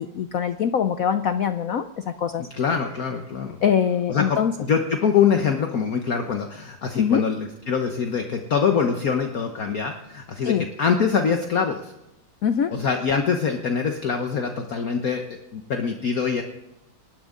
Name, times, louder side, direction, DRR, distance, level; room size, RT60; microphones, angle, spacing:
voice 1, 0.0-2.5 3.6-4.5 7.0-7.2 10.4-10.7 12.4-12.7, left 8 dB, 65° left, 9 dB, 0.8 m, -23 dB
voice 2, 2.4-3.6 4.1-11.9 12.7-15.3 15.5-16.4, left 6 dB, 50° left, 4 dB, 1.4 m, -24 dB
27.0 x 12.5 x 3.8 m, 0.93 s
omnidirectional pair, 2.2 m